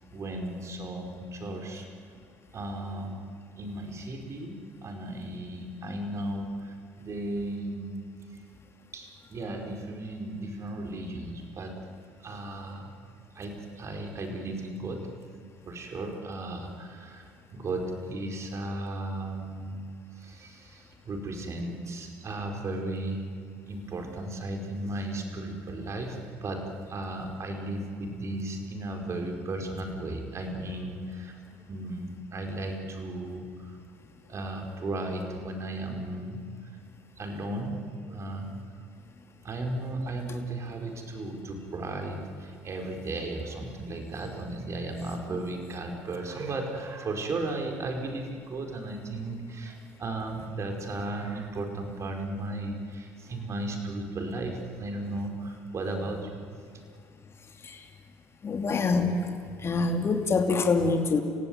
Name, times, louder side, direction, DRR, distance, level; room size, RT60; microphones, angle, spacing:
voice 1, 0.1-1.9 2.5-3.2 3.6-8.0 8.9-11.9 12.2-12.9 13.3-15.0 15.7-19.8 20.1-23.3 23.7-31.4 31.7-33.8 34.3-36.4 37.2-38.5 39.4-56.4, right 2 dB, 40° right, 4 dB, 4.9 m, -35 dB
voice 2, 58.4-59.2 59.6-61.2, left 4 dB, 35° left, 5 dB, 2.6 m, -25 dB
30.0 x 16.0 x 9.6 m, 2.2 s
hypercardioid pair, 70°, 7 cm